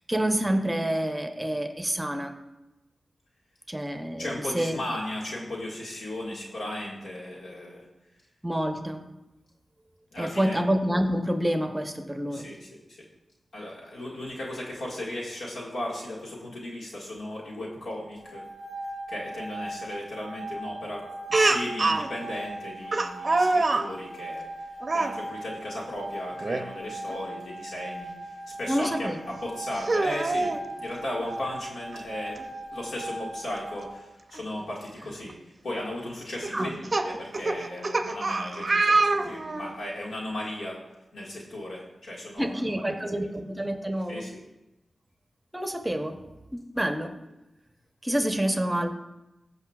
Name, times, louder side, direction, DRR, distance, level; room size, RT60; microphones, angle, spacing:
voice 1, 0.1-2.3 3.7-4.8 8.4-9.0 10.2-12.5 28.7-29.2 36.5-36.7 42.4-44.3 45.5-46.2 46.5-47.1 48.0-48.9, equal, 15° right, 6 dB, 0.9 m, -28 dB
voice 2, 4.2-7.9 10.1-10.6 12.3-13.0 13.5-18.5 19.1-21.0 21.3-24.7 24.9-32.4 32.7-35.4 35.6-40.8 41.1-43.0 43.2-43.3 44.1-44.4, left 1 dB, 90° left, -3 dB, 1.8 m, -36 dB
sound 1, 18.1-34.0, right 1 dB, 25° left, 1.1 m, -39 dB
Speech, 21.3-22.1 22.9-23.9 24.8-25.1 26.4-26.6 27.1-27.2 28.8-28.9 29.7-30.6 31.9-32.0 32.4-32.5 34.3-34.4 35.1-35.3 36.4-39.7, right 3 dB, 50° right, 0.6 m, -25 dB
16.0 x 5.4 x 2.4 m, 0.97 s
cardioid pair, 45°, 0 cm